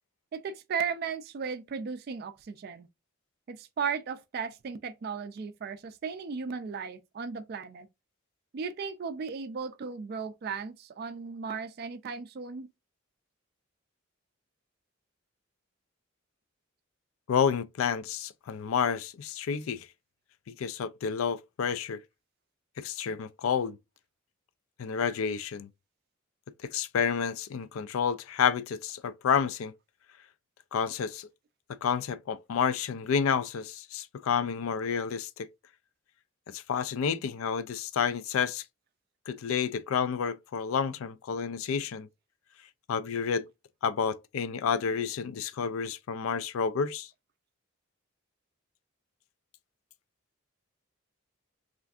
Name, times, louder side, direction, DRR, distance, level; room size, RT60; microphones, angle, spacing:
voice 1, 0.3-2.9 3.5-7.9 8.5-12.7, right 6 dB, 50° right, 0.3 m, -36 dB
voice 2, 17.3-19.9 20.5-22.0 22.8-23.8 24.8-25.7 26.6-29.7 30.7-31.3 31.8-35.5 36.5-38.6 39.3-42.1 42.9-43.5 43.8-47.1, left 7 dB, 90° left, 0.4 m, -30 dB
3.3 x 2.5 x 2.4 m
head